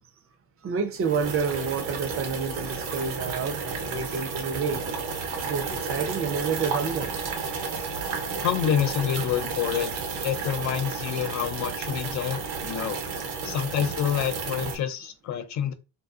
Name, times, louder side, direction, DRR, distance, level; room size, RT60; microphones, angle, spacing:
voice 1, 0.6-4.8 5.4-7.1 13.8-13.9, right 5 dB, 35° right, 0.5 m, -29 dB
sound 1, 1.0-14.8, right 5 dB, 80° right, 0.9 m, -32 dB
voice 2, 8.4-9.9 10.2-13.0 13.4-15.7, left 9 dB, 45° left, 0.4 m, -27 dB
2.6 x 2.3 x 2.4 m
cardioid pair, 100°, 42 cm